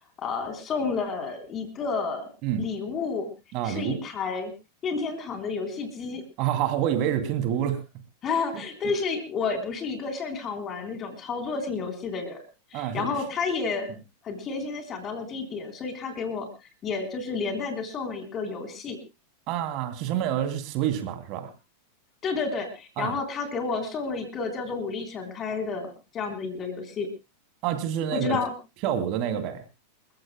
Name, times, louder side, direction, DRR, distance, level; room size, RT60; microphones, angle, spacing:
voice 1, 0.2-2.2 2.6-3.3 3.6-4.5 4.8-6.2 8.2-12.4 12.7-13.9 14.2-16.5 16.8-19.0 22.2-27.1 28.1-28.5, left 4 dB, 25° left, 5 dB, 3.6 m, -31 dB
voice 2, 3.5-4.0 6.4-7.8 12.7-13.1 19.5-21.5 23.0-23.1 27.6-28.4 28.8-29.6, right 10 dB, 40° right, 8 dB, 2.7 m, -27 dB
28.5 x 14.5 x 2.2 m, 0.28 s
figure-of-eight pair, 90°, 0 cm